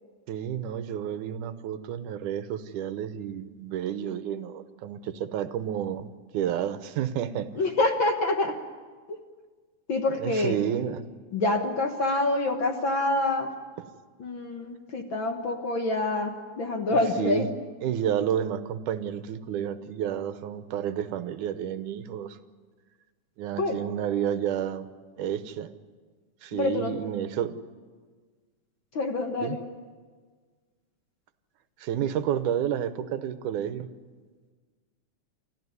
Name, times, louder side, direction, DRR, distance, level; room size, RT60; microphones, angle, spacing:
voice 1, 0.3-6.1 6.3-7.5 10.2-11.1 16.9-17.5 17.8-22.4 23.4-24.9 25.2-25.7 26.4-27.6 29.4-29.6 31.8-33.9, right 9 dB, 80° right, 11 dB, 2.4 m, -30 dB
voice 2, 7.6-8.6 9.9-10.6 11.3-13.5 14.2-17.5 23.6-23.8 26.5-26.9 28.9-29.6, left 2 dB, 50° left, 4 dB, 1.7 m, -26 dB
29.0 x 13.5 x 9.6 m, 1.5 s
omnidirectional pair, 3.5 m